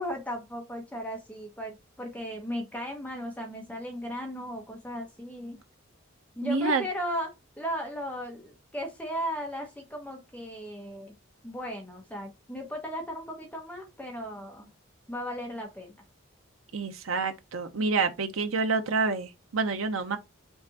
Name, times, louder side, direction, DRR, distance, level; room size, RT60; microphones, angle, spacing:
voice 1, 0.0-5.6 6.4-7.3 7.6-11.1 11.4-14.7 15.1-15.9, equal, 5° left, 1.0 m, -36 dB
voice 2, 6.4-6.8 16.7-20.2, right 4 dB, 75° right, 0.7 m, -28 dB
5.5 x 3.4 x 2.8 m
head